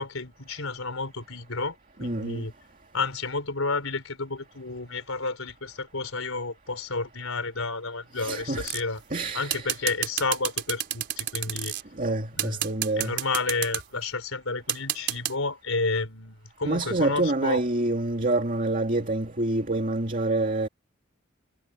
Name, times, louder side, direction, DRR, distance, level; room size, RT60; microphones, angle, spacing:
voice 1, 0.0-2.5 2.9-9.0 9.3-11.8 12.3-12.6 13.0-17.6, left 3 dB, 90° left, 4.0 m, -31 dB
voice 2, 2.0-2.4 8.2-8.7 9.1-9.7 12.0-13.1 16.6-20.7, right 2 dB, 40° right, 2.4 m, -27 dB
sound 1, 8.7-9.0 9.5-11.8 12.4-13.8 14.7-15.3, right 12 dB, 60° right, 4.6 m, -29 dB
head